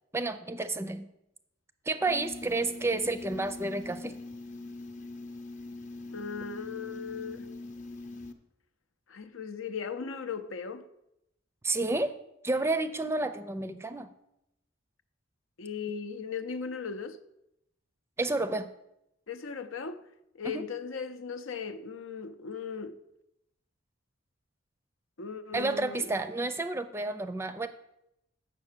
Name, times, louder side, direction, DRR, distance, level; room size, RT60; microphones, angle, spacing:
voice 1, 0.1-1.1 1.9-4.1 11.6-12.1 12.4-14.1 18.2-18.7 20.4-20.6 25.5-27.7, right 2 dB, 15° right, 0.5 m, -30 dB
sound 1, 2.1-8.3, left 2 dB, 35° left, 0.7 m, -43 dB
voice 2, 6.1-7.5 9.1-10.9 15.6-17.2 19.3-20.0 20.3-23.0 25.2-26.1, left 5 dB, 80° left, 0.6 m, -37 dB
8.2 x 6.6 x 6.7 m
head